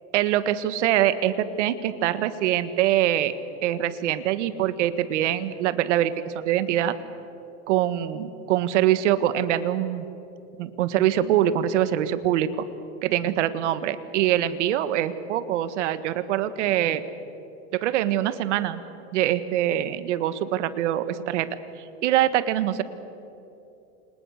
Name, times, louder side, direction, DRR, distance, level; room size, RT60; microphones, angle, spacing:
voice 1, 0.1-3.3 3.6-6.9 7.7-10.1 10.6-12.6 13.0-17.0 17.7-18.8 19.1-21.5 22.0-22.8, right 12 dB, 90° right, 12 dB, 1.7 m, -24 dB
29.5 x 27.0 x 6.6 m, 2.8 s
supercardioid pair, 155°, 34 cm